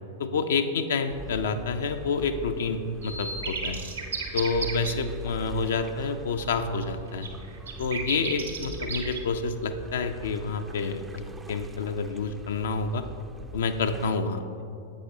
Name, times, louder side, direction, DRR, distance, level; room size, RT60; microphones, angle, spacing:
voice 1, 0.2-3.8 4.3-7.3 7.8-13.0 13.5-14.4, left 4 dB, 65° left, 7 dB, 0.4 m, -28 dB
sound 1, 1.1-14.1, right 2 dB, 15° right, 0.4 m, -43 dB
sound 2, 3.0-4.9 6.8-6.9 7.2-9.2, right 4 dB, 75° right, 1.0 m, -33 dB
10.5 x 7.8 x 2.7 m, 2.7 s
figure-of-eight pair, 95°, 0 cm